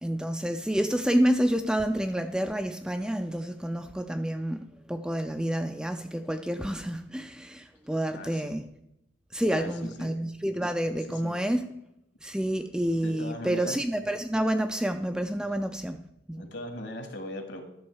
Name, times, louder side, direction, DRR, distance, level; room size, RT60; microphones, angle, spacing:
voice 1, 0.0-8.7 9.3-11.7 12.2-16.0 16.3-16.4, right 1 dB, 5° right, 7 dB, 0.3 m, -29 dB
voice 2, 8.1-8.5 9.5-10.2 11.1-11.4 13.0-13.8 16.3-17.6, left 1 dB, 65° left, 5 dB, 1.6 m, -39 dB
11.5 x 6.4 x 4.6 m, 0.85 s
head